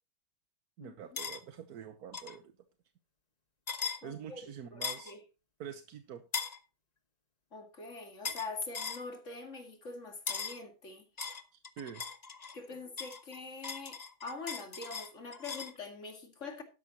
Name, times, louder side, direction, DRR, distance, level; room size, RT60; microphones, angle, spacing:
voice 1, 0.8-2.5 4.0-5.1 5.6-6.2 11.5-12.0 12.7-12.8, right 8 dB, 85° right, 1.5 m, -46 dB
sound 1, 1.2-1.4 2.1-2.4 3.7-4.0 4.8-5.1 6.3-6.6 8.2-8.5 8.7-9.0 10.3-10.6 11.2-12.6 13.0-15.8, left 5 dB, 30° left, 1.0 m, -39 dB
voice 2, 4.0-4.4 4.7-5.2 7.5-11.1 12.5-16.6, left 3 dB, 55° left, 2.6 m, -44 dB
12.5 x 10.5 x 2.9 m
omnidirectional pair, 1.6 m